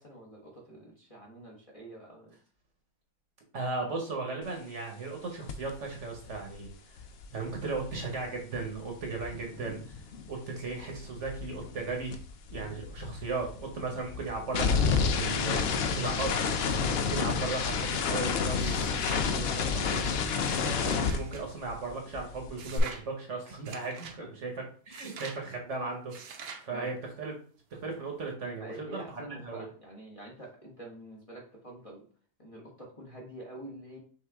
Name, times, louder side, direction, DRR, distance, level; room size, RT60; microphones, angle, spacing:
voice 1, 0.0-2.4 12.6-12.7 24.0-24.3 26.6-26.9 28.6-32.1 32.4-34.0, right 1 dB, 25° left, -3 dB, 1.0 m, -47 dB
voice 2, 3.5-7.0 7.3-10.0 10.3-12.2 12.5-16.4 16.9-20.0 20.6-24.0 24.4-24.5 24.9-27.3 27.7-29.0 29.4-29.7, right 3 dB, 55° right, 1 dB, 1.2 m, -36 dB
sound 1, 5.5-5.7 6.0-10.4 10.6-21.9 22.1-22.8, left 5 dB, 70° left, 0.6 m, -30 dB
sound 2, 18.6-19.3 19.8-21.4 22.6-23.0 23.6-24.2 24.9-25.4 26.1-26.7, right 6 dB, 80° right, 1.2 m, -45 dB
5.9 x 2.6 x 3.4 m, 0.43 s
omnidirectional pair, 1.6 m